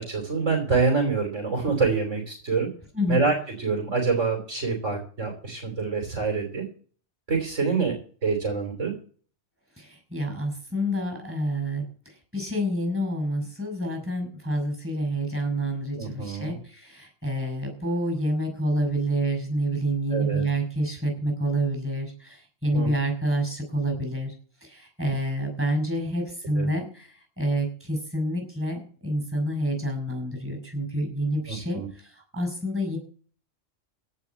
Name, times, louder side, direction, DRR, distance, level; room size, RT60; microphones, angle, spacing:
voice 1, 0.0-2.7 3.1-6.6 7.3-7.9 8.2-8.9 15.9-16.6 20.1-20.4 22.7-22.9 26.6-26.7 31.5-31.9, right 4 dB, 75° right, 2 dB, 4.6 m, -26 dB
voice 2, 9.8-24.3 24.6-33.0, right 1 dB, 10° right, 4 dB, 6.5 m, -28 dB
17.0 x 5.9 x 8.6 m, 0.42 s
omnidirectional pair, 1.3 m